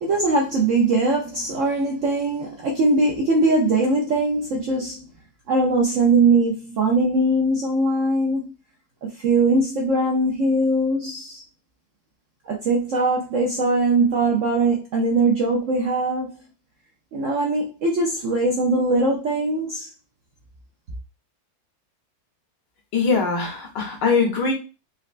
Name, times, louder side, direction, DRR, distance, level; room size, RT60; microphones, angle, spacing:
voice 1, 0.0-5.0 5.5-8.5 9.0-11.4 12.4-16.4 17.1-19.9, right 2 dB, 65° right, 0.7 m, -21 dB
voice 2, 22.9-24.5, left 4 dB, 75° left, 1.5 m, -21 dB
4.2 x 2.1 x 2.4 m
omnidirectional pair, 1.9 m